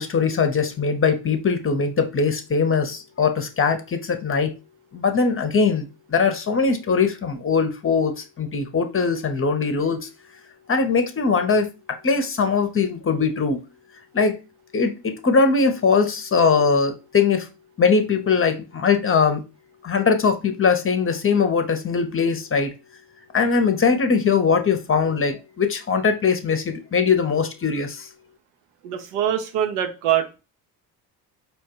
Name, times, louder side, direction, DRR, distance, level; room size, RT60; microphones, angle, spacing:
voice 1, 0.0-4.5 4.9-10.1 10.7-11.7 12.0-13.6 14.1-14.4 14.7-17.5 17.8-19.4 19.8-22.7 23.3-28.0, left 5 dB, 30° left, 0.7 m, -21 dB
voice 2, 28.8-30.3, right 10 dB, 80° right, 0.7 m, -23 dB
4.5 x 2.2 x 2.9 m
hypercardioid pair, 55°, 47 cm